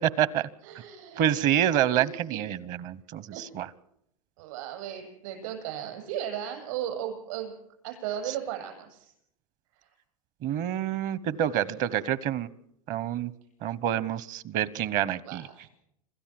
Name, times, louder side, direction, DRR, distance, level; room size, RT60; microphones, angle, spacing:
voice 1, 0.0-0.5 1.2-3.7 10.4-12.5 12.9-13.3 13.6-15.4, right 11 dB, 45° right, 19 dB, 1.1 m, -27 dB
voice 2, 0.6-1.3 1.9-2.4 3.3-3.4 4.4-7.6 7.8-9.1 9.7-9.9 15.2-15.7, right 10 dB, 65° right, 6 dB, 7.8 m, -36 dB
27.0 x 13.5 x 7.7 m, 0.76 s
supercardioid pair, 125°, 19 cm